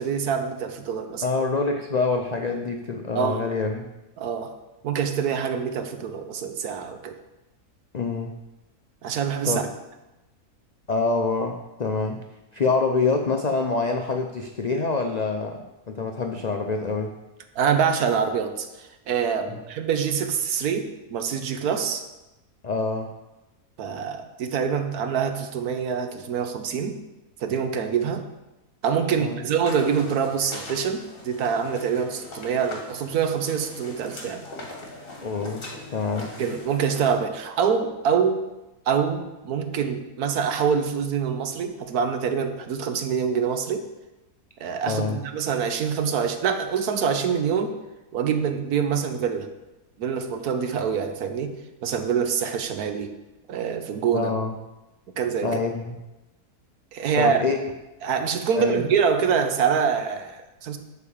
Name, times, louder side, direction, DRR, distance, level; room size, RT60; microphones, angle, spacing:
voice 1, 0.0-1.2 3.1-3.4 4.2-4.5 4.8-7.2 9.0-9.6 17.6-22.0 23.8-27.0 27.4-28.3 28.8-34.4 36.4-38.5 38.9-43.9 44.6-47.8 48.1-49.5 50.0-53.1 53.5-54.3 55.2-55.6 56.9-57.4 58.0-60.8, right 7 dB, 75° right, 7 dB, 1.3 m, -25 dB
voice 2, 1.2-3.9 7.9-8.3 9.4-9.7 10.9-12.2 12.5-17.1 19.5-19.6 22.6-23.1 29.2-29.4 35.2-36.4 44.8-45.2 54.1-54.5 55.4-56.0 57.2-57.7 58.5-58.8, left 4 dB, 85° left, 3 dB, 0.3 m, -26 dB
sound 1, 29.6-37.1, left 2 dB, 35° left, 1.8 m, -41 dB
8.4 x 4.8 x 7.1 m, 1.0 s
omnidirectional pair, 1.6 m